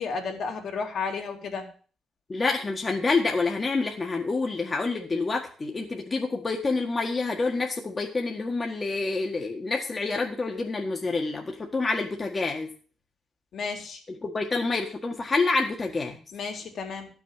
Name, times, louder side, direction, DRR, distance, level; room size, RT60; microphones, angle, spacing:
voice 1, 0.0-1.6 13.5-14.0 16.3-17.1, left 5 dB, 65° left, 2 dB, 3.0 m, -32 dB
voice 2, 2.3-12.7 14.2-16.1, left 3 dB, 30° left, 1 dB, 1.7 m, -27 dB
12.0 x 6.4 x 7.3 m, 0.41 s
cardioid pair, 90°, 0 cm